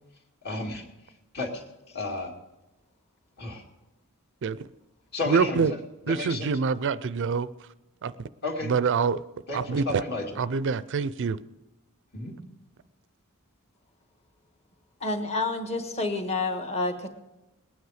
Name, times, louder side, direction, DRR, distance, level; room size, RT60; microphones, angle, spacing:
voice 1, 0.4-0.9 1.3-1.6 1.9-2.3 3.4-3.6 5.1-5.8 6.0-6.5 8.4-8.7 9.5-10.4 12.1-12.4, left 2 dB, 50° left, 2.4 m, -32 dB
voice 2, 5.3-5.7 6.1-7.5 8.0-8.3 8.6-9.2 9.5-10.0 10.4-11.4, right 5 dB, 55° right, 0.4 m, -26 dB
voice 3, 15.0-17.1, left 3 dB, 30° left, 1.4 m, -29 dB
20.0 x 9.5 x 4.9 m
head